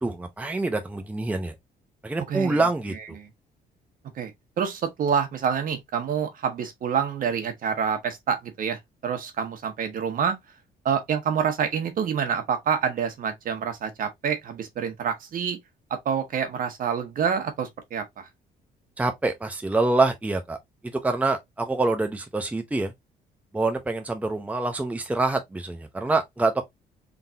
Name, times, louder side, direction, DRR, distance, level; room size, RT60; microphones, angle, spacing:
voice 1, 0.0-1.5 2.0-3.2 19.0-20.6 21.0-22.9 23.5-26.6, right 3 dB, 10° right, 0.7 m, -26 dB
voice 2, 2.3-3.3 4.1-4.3 4.6-10.4 10.8-15.6 15.9-18.3, right 7 dB, 55° right, 1.3 m, -27 dB
3.8 x 3.6 x 2.7 m
cardioid pair, 115°, 16 cm